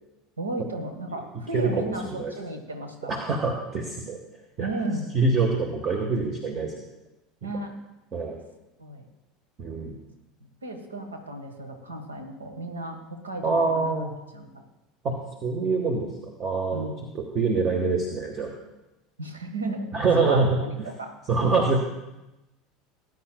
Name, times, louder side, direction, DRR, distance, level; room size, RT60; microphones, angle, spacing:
voice 1, 0.4-2.0 2.3-3.1 4.6-5.1 7.4-7.7 8.8-9.0 10.6-14.0 14.3-14.6 16.7-17.0 19.2-19.9 20.2-21.1, right 2 dB, 80° right, 5 dB, 1.4 m, -34 dB
voice 2, 1.5-2.3 3.1-4.2 4.6-4.7 5.1-6.7 7.4-7.5 8.1-8.4 9.6-9.9 13.4-14.1 15.0-16.1 16.4-16.9 17.1-18.5 19.9-20.6 21.3-21.8, right 3 dB, 35° right, 2 dB, 1.4 m, -25 dB
19.0 x 9.2 x 2.3 m, 0.99 s
figure-of-eight pair, 75°, 0 cm